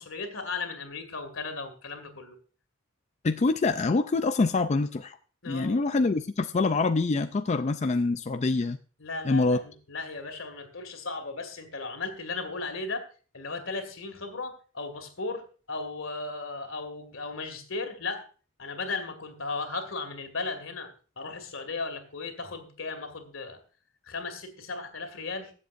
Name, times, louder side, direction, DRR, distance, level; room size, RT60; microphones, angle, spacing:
voice 1, 0.0-2.4 5.4-5.8 9.0-13.0 13.3-18.3 18.6-20.9 21.2-23.6 24.0-25.5, left 3 dB, 80° left, 6 dB, 2.2 m, -36 dB
voice 2, 3.2-5.2 5.5-8.8 9.2-9.6, left 3 dB, 35° left, 9 dB, 0.4 m, -25 dB
22.5 x 7.7 x 2.5 m, 0.39 s
head